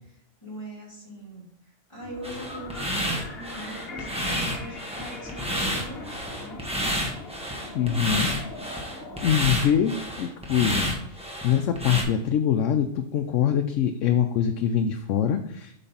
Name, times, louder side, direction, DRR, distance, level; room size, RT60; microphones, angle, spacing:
voice 1, 0.4-1.5 1.9-6.6, equal, 25° left, -7 dB, 3.4 m, -40 dB
sound 1, 2.0-9.3, left 2 dB, 55° left, 1.5 m, -40 dB
sound 2, 2.2-12.0, equal, 5° right, 1.0 m, -30 dB
voice 2, 7.7-8.3 9.2-10.9 11.4-15.8, left 9 dB, 85° left, 6 dB, 0.9 m, -24 dB
8.1 x 3.3 x 5.6 m, 0.74 s
omnidirectional pair, 1.3 m